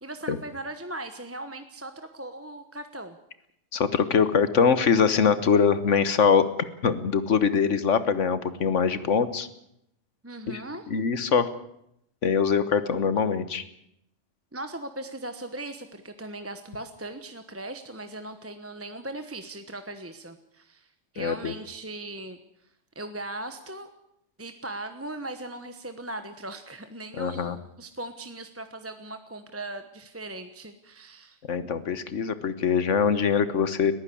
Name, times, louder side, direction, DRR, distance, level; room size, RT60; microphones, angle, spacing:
voice 1, 0.0-3.2 10.2-10.9 14.5-23.9 24.4-31.4, right 2 dB, 10° right, 8 dB, 1.0 m, -39 dB
voice 2, 3.7-6.5 6.8-9.5 10.5-10.6 10.9-11.5 12.2-13.6 21.2-21.5 27.2-27.6 31.5-33.9, left 6 dB, 85° left, 13 dB, 1.6 m, -23 dB
21.0 x 15.0 x 8.5 m, 0.78 s
omnidirectional pair, 1.2 m